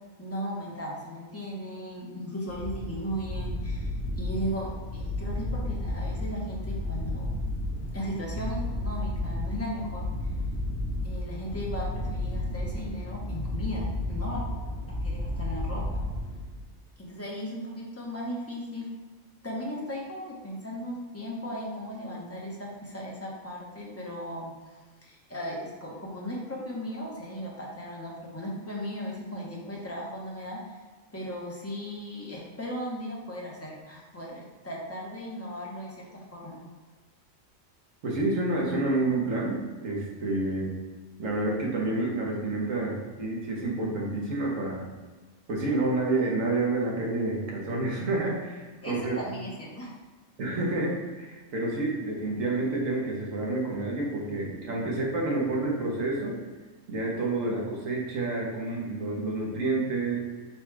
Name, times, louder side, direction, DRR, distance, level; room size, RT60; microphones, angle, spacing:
voice 1, 0.2-7.4 7.9-10.1 11.0-14.4 14.9-16.0 17.0-19.0 19.4-24.5 25.0-30.8 31.1-36.7 48.8-49.9, equal, 15° left, -4 dB, 0.7 m, -37 dB
sound 1, 2.5-16.7, left 1 dB, 55° left, 1.0 m, -32 dB
voice 2, 38.0-40.7 41.2-44.8 45.5-49.2 50.4-56.4 56.9-60.3, right 2 dB, 75° right, -2 dB, 1.3 m, -29 dB
4.2 x 2.3 x 4.5 m, 1.3 s
omnidirectional pair, 1.4 m